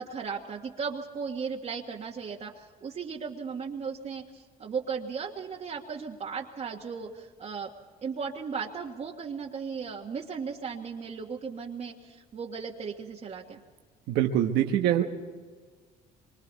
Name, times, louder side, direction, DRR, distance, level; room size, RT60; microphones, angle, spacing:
voice 1, 0.0-7.7 8.0-13.6, right 6 dB, 40° right, -2 dB, 1.6 m, -36 dB
voice 2, 14.1-15.0, right 11 dB, 85° right, 3 dB, 1.3 m, -24 dB
26.0 x 24.5 x 4.1 m, 1.5 s
cardioid pair, 110°, 17 cm